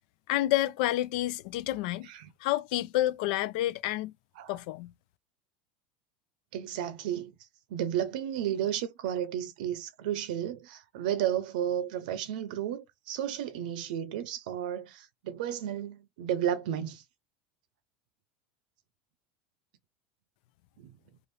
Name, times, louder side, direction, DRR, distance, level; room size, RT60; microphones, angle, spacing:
voice 1, 0.3-2.1 2.4-4.1 4.5-4.9, left 15 dB, 70° left, 0.5 m, -29 dB
voice 2, 6.5-7.3 7.7-17.0 20.8-20.9, right 10 dB, 80° right, 0.6 m, -33 dB
2.7 x 2.5 x 3.3 m
supercardioid pair, 145°, 5 cm